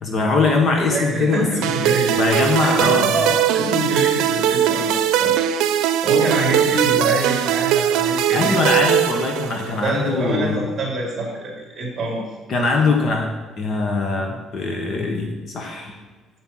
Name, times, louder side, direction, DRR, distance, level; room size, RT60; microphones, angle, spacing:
voice 1, 0.0-1.6 2.2-3.1 8.3-10.6 12.5-13.3 13.6-15.9, left 3 dB, 40° left, 3 dB, 1.1 m, -21 dB
voice 2, 0.9-2.2 2.6-5.3 6.0-8.6 9.8-12.2, right 1 dB, 25° right, -2 dB, 3.5 m, -25 dB
sound 1, 1.6-9.9, right 10 dB, 90° right, 0.6 m, -20 dB
7.8 x 7.4 x 6.1 m, 1.3 s
cardioid pair, 165°, 0 cm